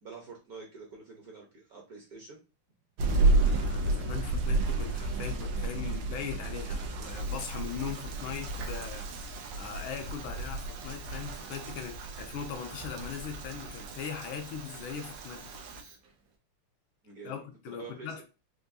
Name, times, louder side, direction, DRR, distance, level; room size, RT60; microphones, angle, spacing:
voice 1, 0.0-2.4 17.0-18.2, right 4 dB, 55° right, 1.1 m, -47 dB
sound 1, 3.0-15.8, right 2 dB, 85° right, 1.6 m, -32 dB
voice 2, 3.4-15.5 17.2-17.4 17.6-18.2, left 7 dB, 75° left, 1.5 m, -40 dB
Fire, 7.0-16.4, right 5 dB, 70° right, 0.8 m, -52 dB
4.7 x 2.6 x 2.6 m
omnidirectional pair, 2.4 m